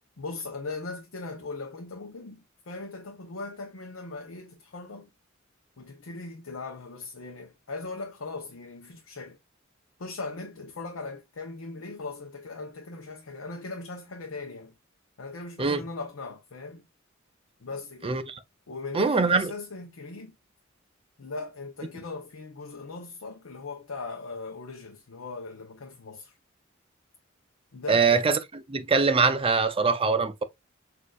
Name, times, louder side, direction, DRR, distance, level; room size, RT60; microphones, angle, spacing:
voice 1, 0.2-5.1 5.8-9.4 10.0-14.7 15.2-16.9 17.6-18.2 18.7-20.4 21.2-26.3 27.7-28.2, left 3 dB, 90° left, 0.7 m, -39 dB
voice 2, 18.0-18.4 18.9-19.5 27.9-28.4 28.7-30.4, right 4 dB, 25° right, 0.5 m, -23 dB
6.4 x 2.6 x 2.4 m
head